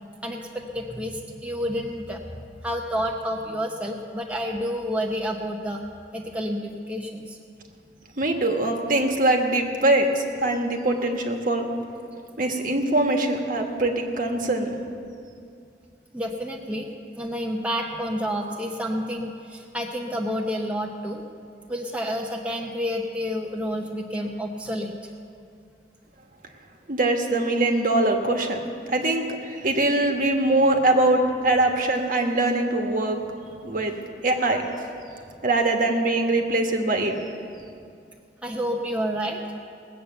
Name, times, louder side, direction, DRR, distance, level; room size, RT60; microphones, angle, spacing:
voice 1, 0.2-5.8 6.1-7.4 16.1-21.2 21.7-25.0 38.4-39.4, equal, 5° right, 0 dB, 0.8 m, -29 dB
voice 2, 8.2-11.7 12.4-14.8 26.9-28.6 28.9-33.2 33.6-34.0 34.2-34.6 35.4-37.2, right 2 dB, 50° right, 3 dB, 1.4 m, -22 dB
19.5 x 8.4 x 6.9 m, 2.4 s
head